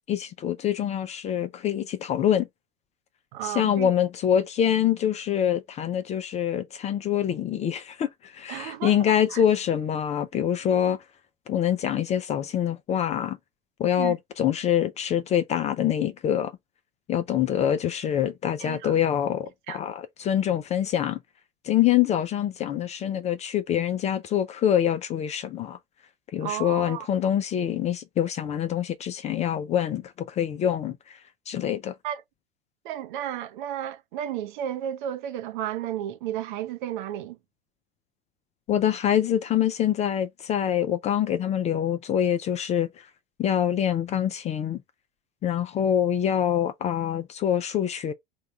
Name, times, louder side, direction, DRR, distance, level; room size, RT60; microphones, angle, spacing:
voice 1, 0.1-2.5 3.4-11.0 11.5-13.4 13.8-16.5 17.1-21.2 21.6-25.8 26.3-31.0 31.5-31.9 38.7-42.9 43.4-44.8 45.4-48.1, left 10 dB, 25° left, 0.4 m, -25 dB
voice 2, 3.3-3.9 8.5-9.4 14.0-14.1 18.6-19.0 19.7-19.8 26.4-27.1 32.0-32.2 32.8-37.4, right 11 dB, 55° right, 0.7 m, -33 dB
3.6 x 2.3 x 4.1 m
figure-of-eight pair, 85°, 29 cm